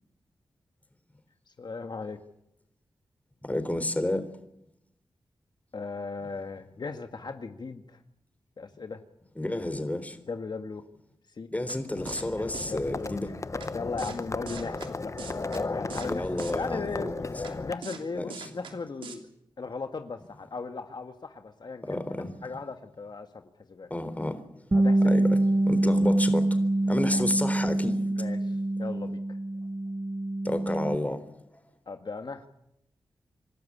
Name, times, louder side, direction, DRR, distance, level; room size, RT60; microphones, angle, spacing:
voice 1, 1.5-2.2 5.7-8.0 8.6-9.0 10.3-10.8 11.3-11.5 12.7-13.3 13.7-15.1 15.7-17.3 17.6-19.3 19.6-22.0 22.4-23.4 23.7-23.9 24.7-25.3 27.1-27.2 28.2-29.4 31.9-32.5, left 4 dB, 60° left, 1.8 m, -37 dB
voice 2, 3.4-4.3 9.4-10.2 11.5-13.3 16.1-17.2 18.1-18.5 21.8-22.3 23.9-24.4 25.1-25.4 25.7-26.6 26.9-28.1 30.4-31.7, left 1 dB, 15° left, 3.8 m, -31 dB
sound 1, 11.7-11.8 12.1-12.2 12.5-12.7 13.6-13.7 14.0-14.2 14.5-14.9 15.2-15.6 15.9-16.1 16.4-16.5 17.4-17.5 17.8-18.0 18.3-18.7 19.0-19.2, right 6 dB, 85° right, 3.0 m, -41 dB
Livestock farm animals working animals, 12.0-17.7, left 3 dB, 35° left, 1.0 m, -35 dB
Bass guitar, 24.7-31.0, right 1 dB, 25° right, 0.7 m, -25 dB
27.0 x 12.5 x 10.0 m
cardioid pair, 45°, 9 cm